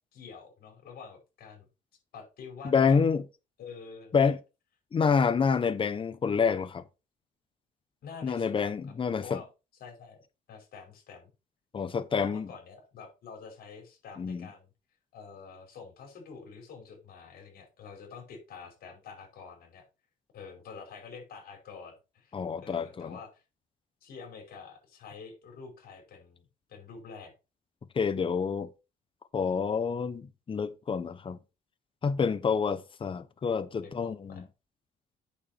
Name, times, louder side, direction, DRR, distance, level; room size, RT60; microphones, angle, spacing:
voice 1, 0.1-1.7 2.1-3.0 3.6-4.3 8.0-8.8 9.2-9.5 9.8-10.2 10.5-11.3 12.1-14.7 15.1-19.8 20.3-23.4 24.0-26.4 26.7-27.3 33.8-34.4, left 5 dB, 65° left, 5.1 m, -47 dB
voice 2, 2.6-3.2 4.1-4.4 4.9-6.8 8.2-9.4 11.7-12.5 14.2-14.5 22.3-23.2 27.9-28.7 29.3-31.4 32.0-34.4, left 6 dB, 30° left, 1.0 m, -28 dB
8.6 x 6.8 x 4.3 m
cardioid pair, 110°, 17 cm